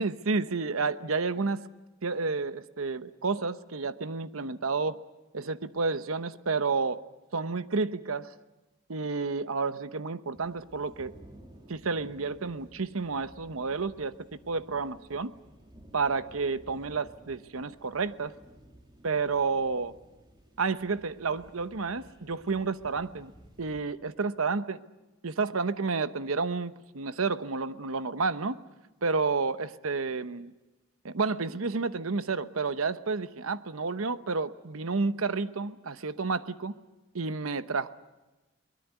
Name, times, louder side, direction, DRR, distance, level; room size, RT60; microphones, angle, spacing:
voice 1, 0.0-1.6 2.0-5.0 5.3-7.0 7.3-8.3 8.9-11.1 11.7-15.3 15.9-18.3 19.0-19.9 20.6-23.3 23.6-24.8 25.2-28.6 29.0-30.5 31.0-36.8 37.1-37.9, right 4 dB, 90° right, 13 dB, 0.9 m, -30 dB
sound 1, 10.3-23.8, equal, 20° right, 3.0 m, -55 dB
22.5 x 20.5 x 9.3 m, 1.1 s
head